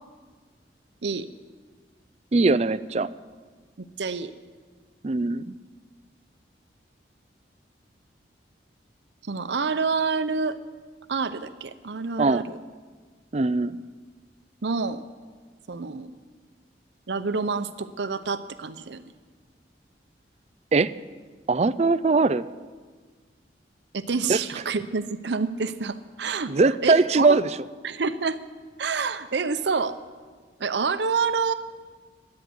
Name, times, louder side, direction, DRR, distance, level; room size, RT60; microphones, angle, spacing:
voice 1, 2.3-3.1 5.0-5.5 12.2-12.5 13.3-13.8 20.7-20.9 21.5-22.4 24.3-24.4 26.5-27.5, right 3 dB, 35° right, 15 dB, 0.4 m, -21 dB
voice 2, 3.8-4.3 9.2-10.6 11.1-12.6 14.6-15.0 15.7-16.1 17.1-19.0 23.9-26.5 26.8-27.4 27.8-28.4 28.8-30.0 30.6-31.5, right 4 dB, 80° right, 11 dB, 0.7 m, -27 dB
16.0 x 10.5 x 7.8 m, 1.5 s
head